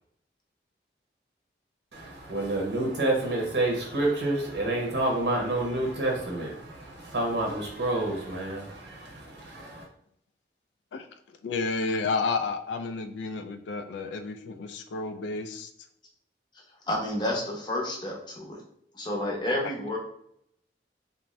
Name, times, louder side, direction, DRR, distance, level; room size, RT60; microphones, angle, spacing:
voice 1, 1.9-9.9, right 2 dB, 85° right, -1 dB, 0.8 m, -29 dB
voice 2, 11.4-15.7, left 4 dB, 85° left, 9 dB, 0.3 m, -31 dB
voice 3, 16.9-18.6 18.9-20.0, left 1 dB, 25° left, -1 dB, 0.6 m, -30 dB
2.5 x 2.2 x 3.1 m, 0.70 s
head